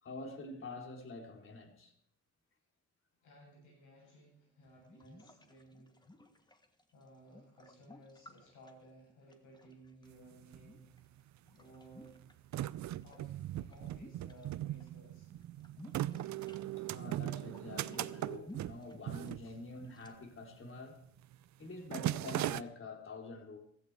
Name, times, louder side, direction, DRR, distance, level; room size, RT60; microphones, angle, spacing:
voice 1, 0.0-1.9 16.8-21.0 21.6-23.6, left 3 dB, 45° left, 3.2 m, -47 dB
voice 2, 3.2-6.0 6.4-6.7 6.9-11.0 11.6-12.2 13.0-15.3, right 1 dB, 80° left, 7.5 m, -58 dB
sound 1, 4.6-10.1 10.5-12.3 12.6-14.9 15.2-20.1, left 1 dB, 15° left, 1.6 m, -58 dB
sound 2, 10.1-10.2 10.4-11.2 11.8-20.1 20.4-20.7 21.0-21.3 21.6-22.6, right 14 dB, 65° right, 0.6 m, -39 dB
16.0 x 14.5 x 4.6 m
cardioid pair, 90°, 30 cm